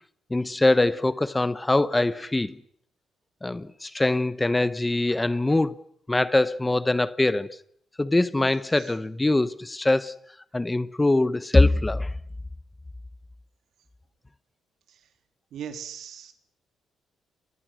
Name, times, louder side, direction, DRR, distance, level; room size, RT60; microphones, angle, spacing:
voice 1, 0.3-2.6 3.4-5.8 6.1-7.6 8.0-10.2 10.5-12.1, left 2 dB, 15° left, 1.0 m, -23 dB
voice 2, 15.5-16.3, right 8 dB, 70° right, 3.4 m, -38 dB
30.0 x 24.0 x 6.4 m
cardioid pair, 90°, 0 cm